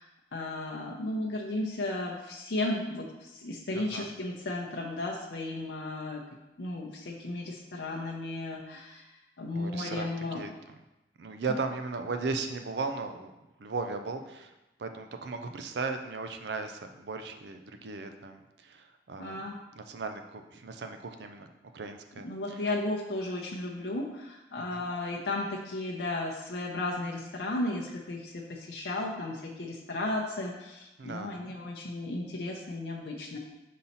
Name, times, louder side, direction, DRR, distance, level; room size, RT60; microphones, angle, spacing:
voice 1, 0.0-6.2 6.6-9.0 9.4-10.4 19.2-19.6 22.2-33.4, left 2 dB, 75° left, -2 dB, 0.7 m, -34 dB
voice 2, 3.7-4.1 9.5-10.5 11.2-13.3 13.6-14.5 14.8-19.4 19.7-22.3 24.7-24.8 31.0-31.4, right 4 dB, 70° right, 7 dB, 0.5 m, -36 dB
5.5 x 4.1 x 4.2 m, 0.98 s
head